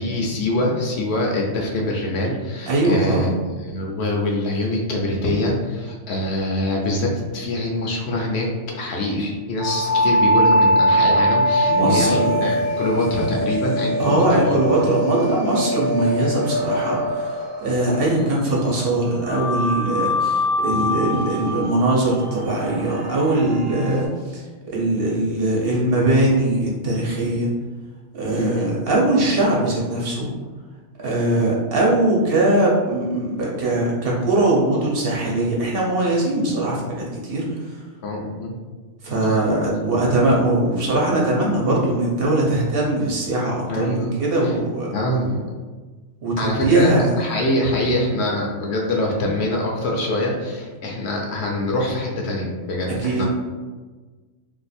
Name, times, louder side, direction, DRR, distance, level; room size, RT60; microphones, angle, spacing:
voice 1, 0.0-3.3 3.6-8.5 8.8-14.6 28.3-28.7 38.0-38.6 39.3-39.5 43.7-44.2 44.4-44.5 44.9-45.4 46.4-53.2, left 1 dB, 65° left, -1 dB, 0.8 m, -24 dB
voice 2, 2.7-3.3 11.7-12.4 14.0-17.4 17.6-24.4 24.7-27.5 28.1-30.3 31.0-37.8 39.0-44.9 46.2-47.1 52.9-53.2, right 2 dB, 55° right, -3 dB, 0.8 m, -21 dB
sound 1, 9.6-18.4 19.3-24.0, equal, 25° right, 0.6 m, -22 dB
2.6 x 2.4 x 4.1 m, 1.3 s
omnidirectional pair, 1.3 m